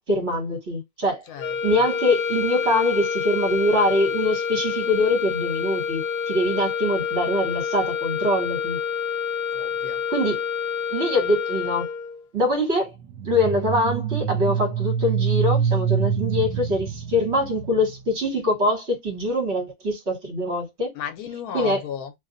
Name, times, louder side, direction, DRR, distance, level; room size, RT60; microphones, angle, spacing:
voice 1, 0.1-1.2 1.6-8.8 10.1-10.4 10.9-11.9 12.3-12.9 13.2-20.9 21.5-21.8, left 1 dB, 50° right, 1.5 m, -23 dB
voice 2, 1.3-1.9 9.5-10.0 20.9-22.1, left 8 dB, 80° left, 1.1 m, -34 dB
sound 1, 1.4-12.2, left 6 dB, 35° left, 0.6 m, -27 dB
sound 2, 13.1-17.9, right 7 dB, 80° right, 1.1 m, -25 dB
2.7 x 2.4 x 3.8 m
omnidirectional pair, 1.6 m